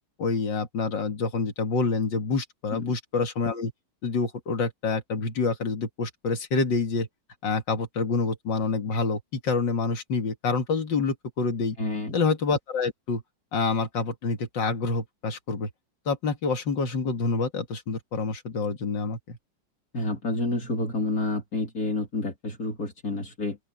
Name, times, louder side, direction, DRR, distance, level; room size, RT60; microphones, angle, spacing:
voice 1, 0.2-3.7 4.0-7.1 7.4-11.8 12.1-13.2 13.5-15.7 16.1-19.4, left 4 dB, 85° left, 2.7 m, -27 dB
voice 2, 11.8-12.2 19.9-23.6, left 2 dB, 50° left, 3.6 m, -29 dB
open air
omnidirectional pair, 1.9 m